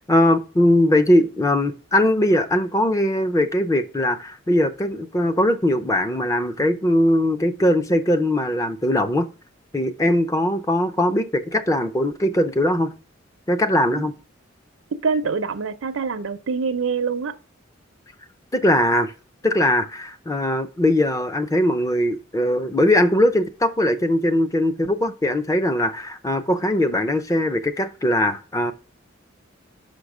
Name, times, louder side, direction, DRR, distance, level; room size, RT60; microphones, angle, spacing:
voice 1, 0.1-9.3 9.7-12.9 13.5-14.1 18.5-19.1 19.4-28.7, left 1 dB, 15° left, 0.5 m, -20 dB
voice 2, 15.0-17.3, right 5 dB, 90° right, 0.6 m, -25 dB
5.8 x 5.2 x 4.8 m
head